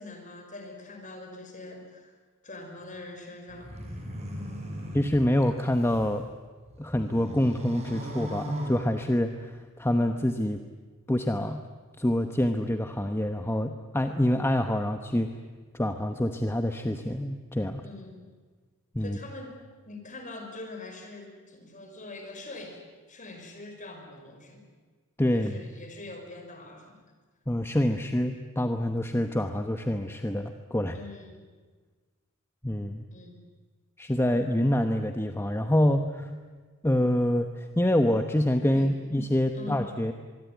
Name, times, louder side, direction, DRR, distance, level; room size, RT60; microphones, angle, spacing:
voice 1, 0.0-2.1 2.4-3.7 17.8-18.2 19.0-19.6 19.9-22.8 23.1-24.6 25.3-27.0 30.9-31.5 33.1-33.4 38.6-39.1 39.5-39.9, left 2 dB, 35° left, 4 dB, 5.4 m, -43 dB
sound 1, 3.5-6.1 6.6-9.4, equal, 30° right, 6.5 m, -38 dB
voice 2, 4.9-6.2 6.8-10.6 11.1-11.6 12.0-15.3 15.7-17.8 18.9-19.2 25.2-25.7 27.5-31.0 32.6-33.0 34.0-36.3 36.8-40.1, left 1 dB, 10° left, 7 dB, 1.1 m, -26 dB
24.5 x 23.0 x 9.4 m, 1.4 s
head